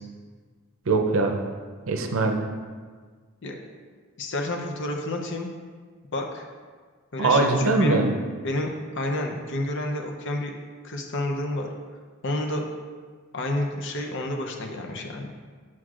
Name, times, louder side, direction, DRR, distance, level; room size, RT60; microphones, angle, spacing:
voice 1, 0.9-1.4 1.9-2.4 7.2-8.1, right 3 dB, 65° right, 4 dB, 0.6 m, -22 dB
voice 2, 4.2-5.5 6.1-6.4 7.1-8.0 8.4-10.5 10.8-11.7 12.2-12.6 13.3-15.3, left 1 dB, 55° left, 2 dB, 0.7 m, -29 dB
7.7 x 6.0 x 2.5 m, 1.5 s
head